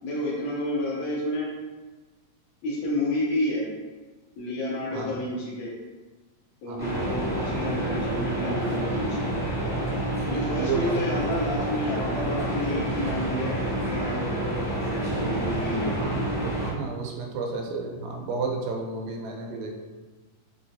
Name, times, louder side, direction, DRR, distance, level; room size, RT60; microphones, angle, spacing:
voice 1, 0.0-1.5 2.6-3.7 4.4-5.7 6.6-9.3 10.3-16.0, left 1 dB, 80° left, -5 dB, 1.6 m, -30 dB
voice 2, 6.7-7.0 10.3-11.0 15.0-15.2 15.8-19.7, right 4 dB, 85° right, 1 dB, 2.2 m, -32 dB
sound 1, 6.8-16.7, right 1 dB, 50° left, 0.8 m, -28 dB
5.3 x 2.2 x 2.6 m, 1.2 s
omnidirectional pair, 3.9 m